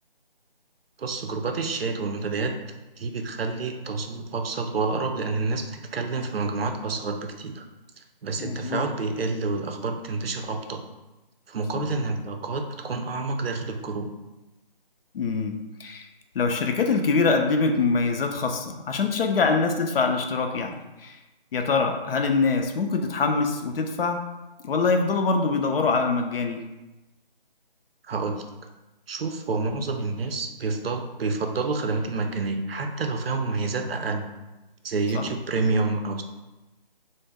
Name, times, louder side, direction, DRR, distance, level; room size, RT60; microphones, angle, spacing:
voice 1, 1.0-2.6 3.0-7.7 8.0-10.8 11.5-14.1 28.0-28.4 29.1-34.2 34.8-36.2, right 3 dB, 90° right, 5 dB, 0.5 m, -28 dB
voice 2, 8.4-8.8 11.7-11.9 15.1-16.1 16.3-21.2 21.5-24.2 24.6-26.7 35.1-35.3, left 4 dB, 75° left, 4 dB, 0.4 m, -24 dB
2.2 x 2.0 x 3.4 m, 1.0 s
figure-of-eight pair, 170°, 29 cm